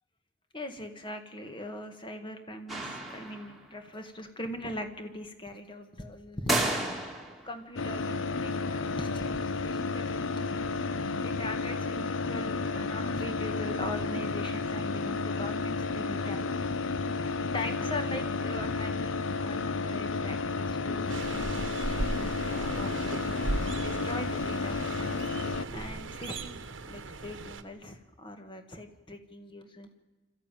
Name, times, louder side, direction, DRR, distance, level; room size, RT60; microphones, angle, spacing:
voice 1, 0.5-6.6 7.4-10.4 10.9-16.5 17.0-17.1 17.5-21.5 21.8-24.7 25.7-29.9, left 1 dB, 25° left, 6 dB, 1.7 m, -41 dB
sound 1, 2.7-3.7 6.5-7.5, right 1 dB, ahead, 2.7 m, -31 dB
sound 2, 7.8-25.7, left 4 dB, 85° left, 0.6 m, -32 dB
sound 3, 21.1-27.6, right 2 dB, 75° right, 1.1 m, -37 dB
26.0 x 14.0 x 9.1 m, 1.2 s
head